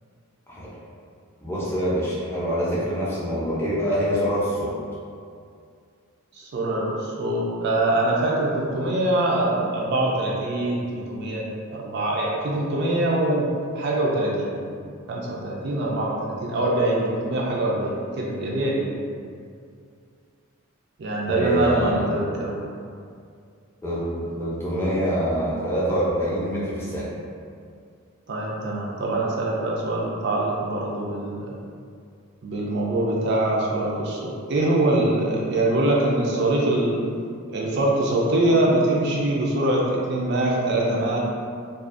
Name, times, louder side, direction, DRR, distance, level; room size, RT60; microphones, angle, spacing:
voice 1, 1.4-4.7 21.3-22.0 23.8-27.1, equal, 10° left, -8 dB, 0.5 m, -25 dB
voice 2, 6.3-11.4 11.7-13.5 13.7-14.5 15.1-18.9 21.0-22.6 28.3-31.6 32.4-37.0 37.5-41.2, right 1 dB, 55° right, -3 dB, 0.3 m, -23 dB
2.4 x 2.3 x 2.4 m, 2.3 s
head